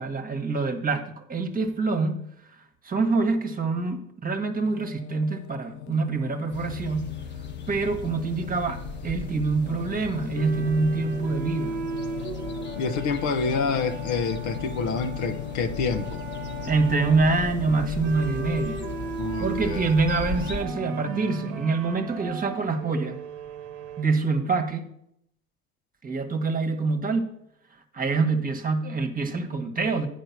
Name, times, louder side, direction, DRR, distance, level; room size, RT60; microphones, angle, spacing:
voice 1, 0.0-2.2 2.8-7.1 7.7-11.7 16.6-18.8 19.4-23.2 24.0-24.9 26.0-27.3 27.9-30.1, right 3 dB, 25° right, 5 dB, 1.3 m, -25 dB
Singing, 4.5-21.6, left 12 dB, 90° left, 0.5 m, -38 dB
sound 1, 6.5-20.7, equal, 35° left, 1.2 m, -39 dB
sound 2, 10.4-24.0, right 5 dB, 75° right, 1.0 m, -37 dB
voice 2, 12.8-16.2 19.2-19.9, left 4 dB, 60° left, 8 dB, 0.9 m, -28 dB
9.1 x 5.1 x 5.8 m, 0.73 s
hypercardioid pair, 70°, 33 cm